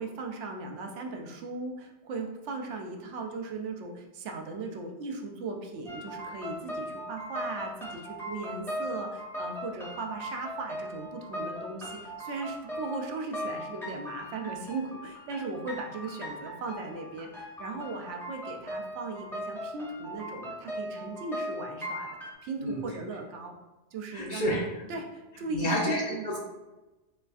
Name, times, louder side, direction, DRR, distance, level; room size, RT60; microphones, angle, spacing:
voice 1, 0.0-22.1 22.4-23.5 23.9-24.6 24.9-25.8 26.1-26.2, right 3 dB, 85° right, 3 dB, 0.9 m, -38 dB
sound 1, 5.9-22.3, equal, 5° left, 0.5 m, -39 dB
voice 2, 22.6-23.0 24.1-24.9 25.5-26.4, equal, 55° left, -2 dB, 0.6 m, -30 dB
3.4 x 3.2 x 2.3 m, 1.1 s
omnidirectional pair, 1.2 m